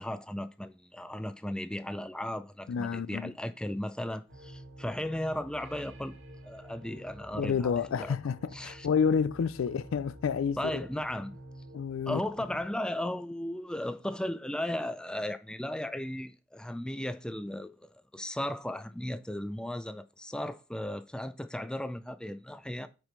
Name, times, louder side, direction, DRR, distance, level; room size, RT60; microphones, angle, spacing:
voice 1, 0.0-6.1 6.4-7.7 8.0-8.2 8.5-8.9 10.6-11.4 12.1-22.9, left 1 dB, 5° left, 0.4 m, -36 dB
voice 2, 2.7-3.3 7.4-10.9 11.7-12.2, left 6 dB, 75° left, 0.4 m, -29 dB
sound 1, 4.3-12.7, right 1 dB, 65° right, 2.4 m, -48 dB
6.2 x 5.0 x 5.3 m
head